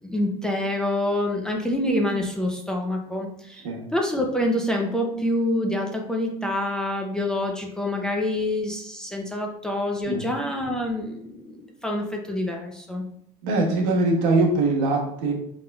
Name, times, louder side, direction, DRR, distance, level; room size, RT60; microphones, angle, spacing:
voice 1, 0.0-3.6 3.9-13.0, left 1 dB, 5° left, 0 dB, 0.4 m, -26 dB
voice 2, 13.4-15.3, right 2 dB, 80° right, 0 dB, 1.2 m, -22 dB
5.0 x 3.5 x 2.2 m, 0.72 s
cardioid pair, 165°, 15 cm